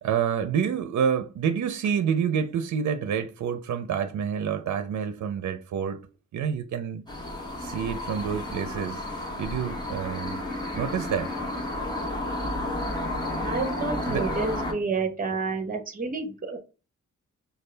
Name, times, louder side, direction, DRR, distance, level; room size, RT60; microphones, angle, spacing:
voice 1, 0.0-6.0 6.3-7.0 7.6-9.0 9.4-10.4 10.8-11.3 14.1-14.3, right 7 dB, 80° right, 0.5 m, -28 dB
sound 1, 7.1-14.7, left 1 dB, 15° left, 1.1 m, -32 dB
voice 2, 13.4-16.6, right 4 dB, 30° right, 1.0 m, -29 dB
5.4 x 2.3 x 3.3 m
wide cardioid pair, 125°, 29 cm